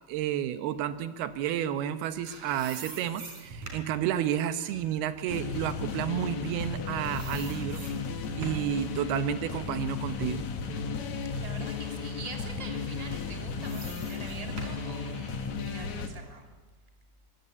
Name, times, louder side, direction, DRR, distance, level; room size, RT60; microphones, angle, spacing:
voice 1, 0.1-7.8 8.4-10.4, right 10 dB, 80° right, 11 dB, 2.9 m, -31 dB
sound 1, 2.0-6.7 7.0-8.8 9.2-11.2 11.7-11.8 12.8-15.8, right 3 dB, 50° right, 5.3 m, -46 dB
sound 2, 5.3-16.1, left 5 dB, 50° left, 2.9 m, -34 dB
voice 2, 11.3-16.4, right 3 dB, 10° right, 3 dB, 2.7 m, -45 dB
24.5 x 24.0 x 8.4 m, 1.2 s
omnidirectional pair, 4.6 m